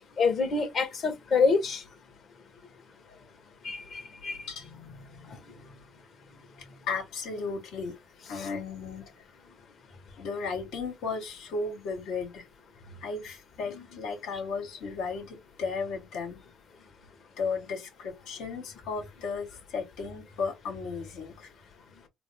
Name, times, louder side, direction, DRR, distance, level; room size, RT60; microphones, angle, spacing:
voice 1, 0.2-1.8 3.6-4.4, left 4 dB, 50° left, 1.3 m, -26 dB
voice 2, 6.9-7.9 8.3-9.0 10.2-12.4 13.0-16.4 17.4-21.5, left 4 dB, 80° left, 1.8 m, -35 dB
3.9 x 2.0 x 3.3 m
cardioid pair, 100°, 0 cm